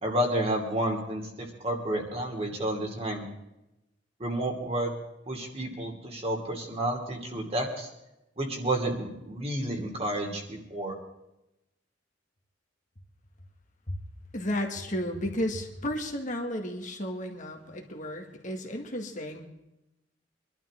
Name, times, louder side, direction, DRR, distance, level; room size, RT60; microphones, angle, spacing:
voice 1, 0.0-3.2 4.2-4.9 5.3-7.9 8.4-11.0, right 1 dB, 35° right, 1 dB, 2.7 m, -30 dB
voice 2, 14.3-19.4, left 1 dB, 45° left, 2 dB, 1.9 m, -33 dB
24.5 x 12.0 x 3.7 m, 0.90 s
head